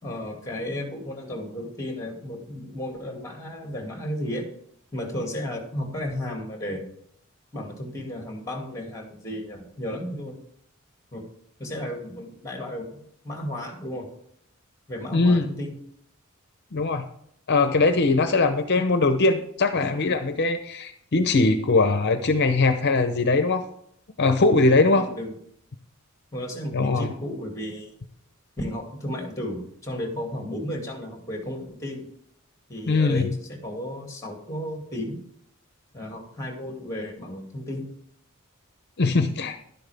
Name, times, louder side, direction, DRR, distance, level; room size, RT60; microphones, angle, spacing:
voice 1, 0.0-4.5 4.9-6.8 7.5-10.3 11.1-11.2 11.6-14.1 14.9-15.7 24.9-25.3 26.3-27.9 28.6-32.0 32.7-35.2 35.9-37.8, left 1 dB, 15° left, 2 dB, 2.4 m, -33 dB
voice 2, 15.1-15.5 16.7-17.1 17.5-23.6 24.2-25.1 26.7-27.1 32.9-33.3 39.0-39.6, left 3 dB, 55° left, 8 dB, 0.7 m, -21 dB
11.5 x 10.5 x 3.5 m, 0.69 s
head